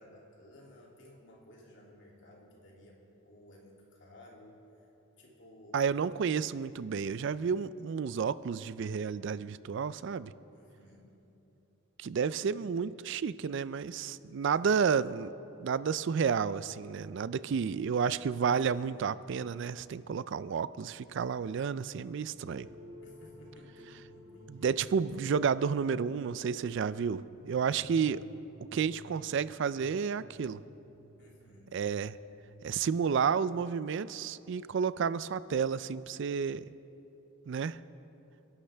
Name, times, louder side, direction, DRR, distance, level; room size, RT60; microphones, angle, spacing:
voice 1, 0.0-4.6 5.2-5.9 10.5-11.2 17.2-17.9 23.0-24.7 31.2-31.8, left 1 dB, 60° left, -3 dB, 2.8 m, -56 dB
voice 2, 5.7-10.3 12.0-15.3 15.6-22.7 24.5-28.2 28.7-30.6 31.7-32.2 32.6-36.6 37.5-37.8, right 6 dB, 60° right, 16 dB, 0.3 m, -31 dB
sound 1, 22.4-32.6, equal, 25° right, 1.6 m, -55 dB
28.5 x 11.5 x 3.4 m, 2.9 s
head